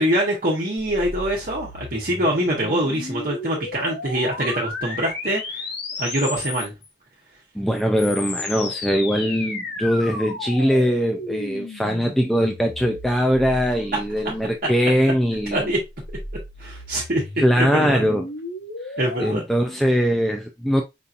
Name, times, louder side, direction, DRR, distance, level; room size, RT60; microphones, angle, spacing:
voice 1, 0.0-5.6 6.0-6.7 15.5-15.8 16.6-17.2 17.6-18.0 19.0-19.4, right 1 dB, 50° right, 1.0 m, -24 dB
sound 1, 0.8-6.9 7.7-14.4 15.4-19.3, left 3 dB, 60° left, 1.1 m, -34 dB
voice 2, 7.5-15.7 17.4-18.3 19.2-20.8, equal, ahead, 0.4 m, -21 dB
5.2 x 2.8 x 2.5 m
head